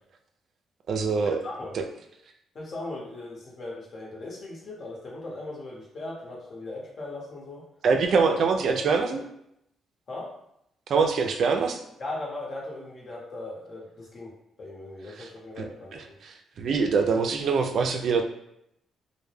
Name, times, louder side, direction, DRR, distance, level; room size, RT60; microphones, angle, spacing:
voice 1, 0.9-1.4 1.7-1.8 7.8-9.2 10.9-11.8 15.2-15.3 15.6-15.7 16.6-18.2, right 5 dB, 60° right, 4 dB, 0.3 m, -23 dB
voice 2, 1.4-1.8 2.5-7.6 8.1-8.2 8.7-8.8 9.1-9.2 10.1-10.3 12.0-14.3 14.6-16.2, left 2 dB, 50° left, -3 dB, 0.9 m, -38 dB
2.1 x 2.1 x 3.2 m, 0.77 s
cardioid pair, 90°, 0 cm